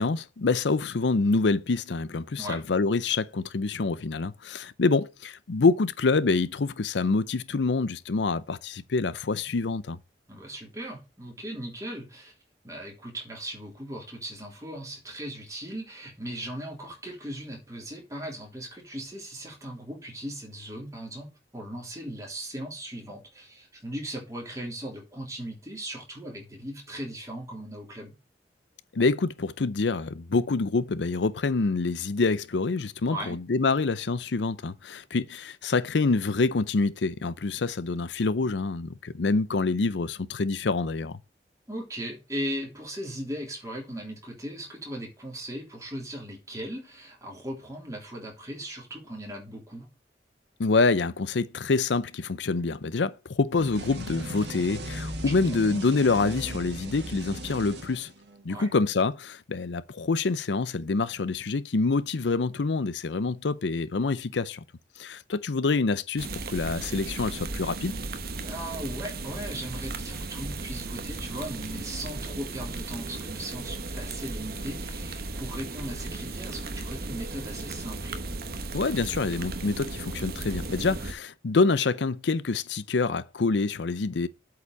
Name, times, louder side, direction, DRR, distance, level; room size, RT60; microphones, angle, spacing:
voice 1, 0.0-10.0 28.9-41.2 50.6-58.1 58.4-64.6 65.0-67.9 78.7-84.3, left 3 dB, 90° left, 0.6 m, -26 dB
voice 2, 10.3-12.3 12.6-28.2 33.1-33.4 41.7-49.9 55.2-55.6 58.5-58.7 68.4-78.2, equal, 20° right, 3.4 m, -38 dB
sound 1, 53.6-58.5, right 1 dB, 75° right, 2.1 m, -37 dB
sound 2, 66.2-81.1, right 3 dB, 55° right, 1.1 m, -36 dB
8.2 x 4.8 x 7.1 m
head